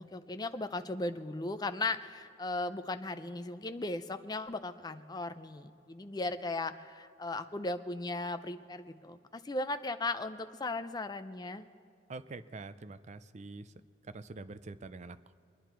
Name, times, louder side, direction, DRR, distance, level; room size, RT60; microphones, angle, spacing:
voice 1, 0.0-11.6, left 2 dB, 20° left, 10 dB, 0.5 m, -37 dB
voice 2, 12.1-13.7 14.0-15.3, right 3 dB, 35° right, 12 dB, 0.4 m, -45 dB
23.5 x 10.0 x 4.5 m, 2.5 s
head